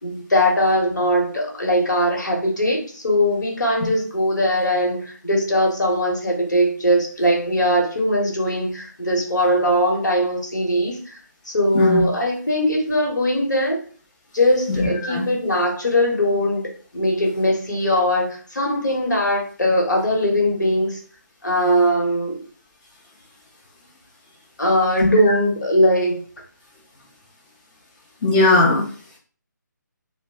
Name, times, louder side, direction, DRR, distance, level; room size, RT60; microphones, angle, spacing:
voice 1, 0.0-11.2 11.4-13.8 14.3-21.0 21.4-22.4 24.6-26.2, equal, 70° left, 0 dB, 1.2 m, -20 dB
voice 2, 14.7-15.3 25.0-25.1 28.2-28.8, left 2 dB, 25° left, -4 dB, 0.6 m, -18 dB
2.9 x 2.2 x 2.7 m, 0.41 s
figure-of-eight pair, 145°, 10 cm